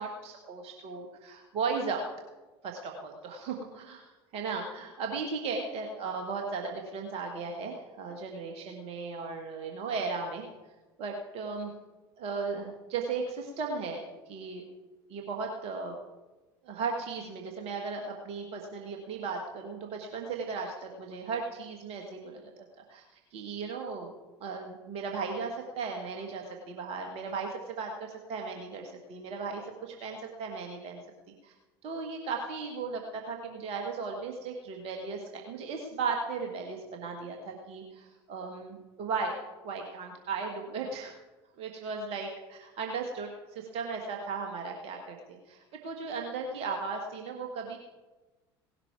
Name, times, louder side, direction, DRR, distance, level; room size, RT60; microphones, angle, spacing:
voice 1, 0.0-2.1 2.6-10.5 11.0-11.7 12.2-14.6 15.1-16.0 16.6-22.4 22.8-23.0 23.3-24.1 24.4-31.0 31.4-31.5 31.8-39.4 39.6-41.1 41.6-47.8, right 4 dB, 50° right, 2 dB, 1.8 m, -36 dB
17.5 x 12.0 x 4.7 m, 1.2 s
figure-of-eight pair, 65°, 13 cm